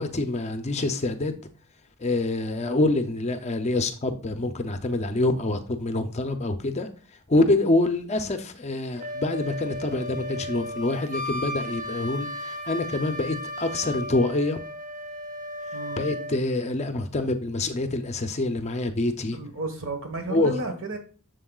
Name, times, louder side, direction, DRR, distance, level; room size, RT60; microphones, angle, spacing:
voice 1, 0.0-1.4 2.0-6.9 7.3-14.6 16.0-19.4 20.3-20.5, left 2 dB, 30° left, 0.5 m, -26 dB
Wind instrument woodwind instrument, 9.0-16.4, left 1 dB, 35° right, 0.8 m, -35 dB
voice 2, 15.7-16.0 19.3-21.0, right 1 dB, 60° right, 1.3 m, -32 dB
7.5 x 6.7 x 2.3 m
head